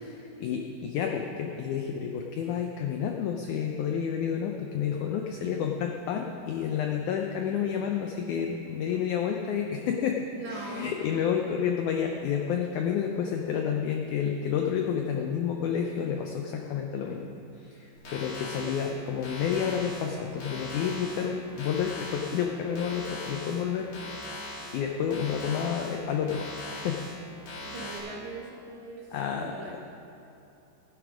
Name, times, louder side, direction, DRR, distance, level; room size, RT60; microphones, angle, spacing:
voice 1, 0.4-10.2 10.5-17.3 17.6-24.2 24.7-27.1 29.1-29.6, left 8 dB, 90° left, 2 dB, 1.7 m, -30 dB
voice 2, 10.4-10.9 27.6-29.8, right 3 dB, 60° right, -3 dB, 2.4 m, -41 dB
sound 1, 18.0-28.0, left 2 dB, 55° left, 4.8 m, -41 dB
15.5 x 10.5 x 5.0 m, 2.9 s
omnidirectional pair, 4.3 m